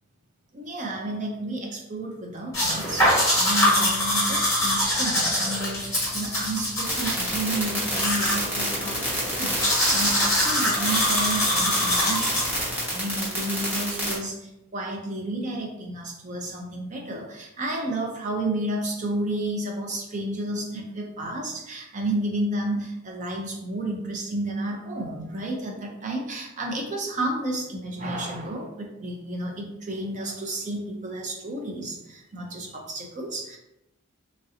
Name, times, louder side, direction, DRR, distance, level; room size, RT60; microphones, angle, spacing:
voice 1, 0.5-33.6, right 1 dB, 35° right, 0 dB, 0.5 m, -31 dB
sound 1, 2.5-12.8, left 1 dB, 15° left, 1.2 m, -24 dB
sound 2, 6.8-14.1, equal, 10° right, 0.9 m, -28 dB
3.1 x 2.5 x 2.7 m, 0.85 s
head